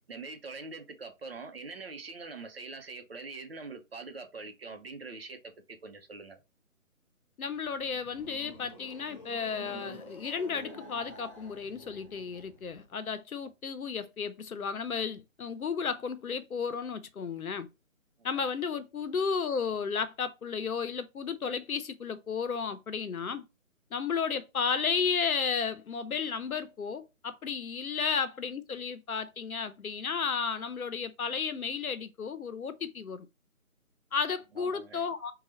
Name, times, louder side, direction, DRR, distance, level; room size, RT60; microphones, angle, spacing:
voice 1, 0.1-6.4 13.4-13.5 18.2-18.5 34.6-35.0, right 3 dB, 45° right, 0.8 m, -44 dB
voice 2, 7.4-17.7 18.2-23.5 23.9-33.3 34.1-35.3, left 6 dB, 85° left, 0.8 m, -33 dB
sound 1, 7.5-12.9, equal, 20° left, 1.2 m, -49 dB
3.8 x 2.4 x 4.2 m
figure-of-eight pair, 160°, 42 cm